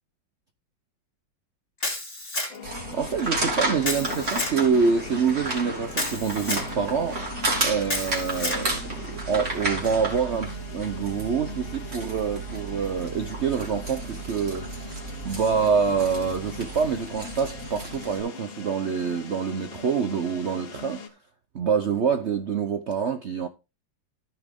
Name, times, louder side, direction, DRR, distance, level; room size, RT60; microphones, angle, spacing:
Camera, 1.8-2.8 3.8-4.6 5.9-6.7 7.9-8.6, left 2 dB, 30° left, 3.2 m, -30 dB
sound 1, 2.5-21.1, left 6 dB, 75° left, 2.2 m, -42 dB
sound 2, 2.6-18.2, right 2 dB, 35° right, 3.6 m, -32 dB
voice 1, 2.9-7.2 7.6-14.7 15.2-21.0 21.5-23.5, right 6 dB, 75° right, 0.6 m, -26 dB
14.5 x 6.0 x 3.6 m
omnidirectional pair, 2.2 m